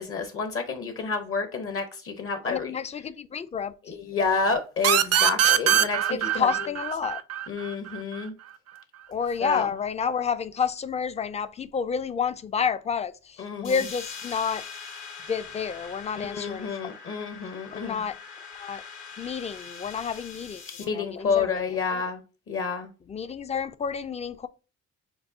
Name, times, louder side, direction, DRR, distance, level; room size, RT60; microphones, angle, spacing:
voice 1, 0.0-2.7 3.9-6.5 7.5-8.3 9.4-9.7 13.4-13.7 16.1-18.0 20.8-22.2 22.5-22.9, left 4 dB, 45° left, 0.8 m, -29 dB
voice 2, 2.4-3.9 5.5-5.6 6.1-7.2 9.1-14.6 15.3-16.9 17.7-18.2 18.5-18.8 19.2-20.6 20.9-21.6 21.9-22.0 23.1-24.5, left 6 dB, 25° left, 0.3 m, -30 dB
sound 1, 4.8-8.2, right 10 dB, 55° right, 0.5 m, -22 dB
sound 2, 13.6-20.8, left 5 dB, 75° left, 1.9 m, -42 dB
6.8 x 2.3 x 2.7 m
cardioid pair, 90°, 30 cm